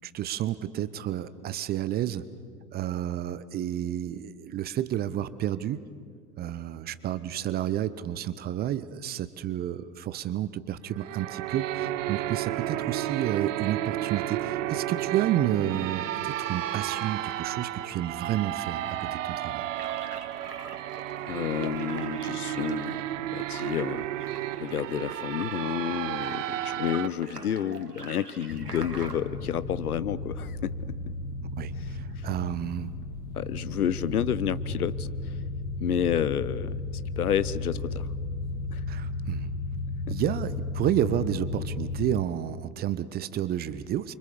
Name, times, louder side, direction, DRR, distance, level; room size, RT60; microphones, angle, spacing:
voice 1, 0.0-2.2 2.7-5.8 6.4-19.7 31.5-32.9 38.9-39.5 40.1-44.1, right 11 dB, 20° right, 15 dB, 0.7 m, -30 dB
sound 1, 10.9-27.1, right 13 dB, 55° right, 0.9 m, -32 dB
sound 2, 19.8-29.2, right 3 dB, 85° right, 2.1 m, -44 dB
voice 2, 21.3-23.0 23.3-30.7 32.2-32.3 33.3-35.3 35.8-36.8 37.2-38.1 38.7-38.8 40.1-40.2, left 9 dB, 70° left, 17 dB, 1.0 m, -30 dB
sound 3, 28.5-42.2, left 3 dB, 40° left, 1.6 m, -34 dB
29.0 x 25.0 x 7.0 m, 2.2 s
figure-of-eight pair, 95°, 46 cm